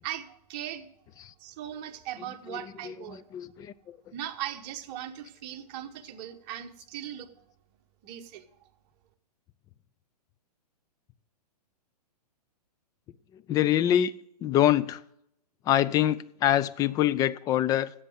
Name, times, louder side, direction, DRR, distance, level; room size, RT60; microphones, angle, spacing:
voice 1, 0.0-0.9 1.4-3.2 4.0-7.5 8.0-8.5, right 11 dB, 40° right, 1.2 m, -39 dB
voice 2, 2.5-4.0 13.5-14.1 14.4-15.0 15.7-17.9, left 12 dB, 20° left, 0.4 m, -25 dB
11.0 x 8.0 x 7.6 m
hypercardioid pair, 125°, 21 cm